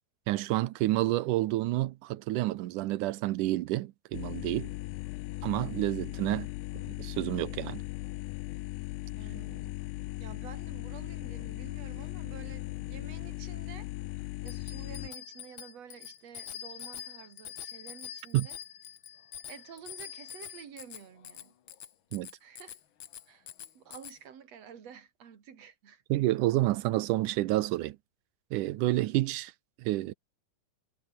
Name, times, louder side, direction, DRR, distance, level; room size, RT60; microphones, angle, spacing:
voice 1, 0.3-4.7 5.4-6.5 6.8-7.8 18.3-18.5 22.1-22.3 26.1-28.0 28.5-29.5 29.8-30.1, right 16 dB, 75° right, 2.3 m, -29 dB
sound 1, 4.1-15.1, left 20 dB, 80° left, 2.1 m, -38 dB
voice 2, 9.1-9.7 10.2-13.9 14.4-18.6 19.5-21.5 22.4-22.8 23.3-23.5 23.7-26.0, right 8 dB, 50° right, 3.4 m, -50 dB
Bicycle bell, 14.5-24.2, left 10 dB, 60° left, 1.3 m, -45 dB
omnidirectional pair, 3.8 m